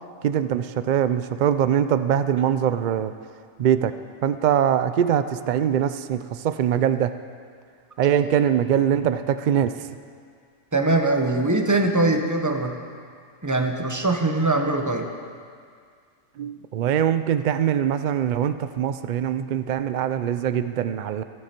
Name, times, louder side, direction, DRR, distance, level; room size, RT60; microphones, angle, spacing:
voice 1, 0.2-3.1 3.6-3.9 4.2-7.1 8.0-9.7 16.4-21.2, right 9 dB, 90° right, 11 dB, 0.4 m, -22 dB
voice 2, 10.7-12.7 13.4-15.1, right 2 dB, 15° right, 4 dB, 0.8 m, -22 dB
23.0 x 7.9 x 4.4 m, 2.1 s
omnidirectional pair, 1.4 m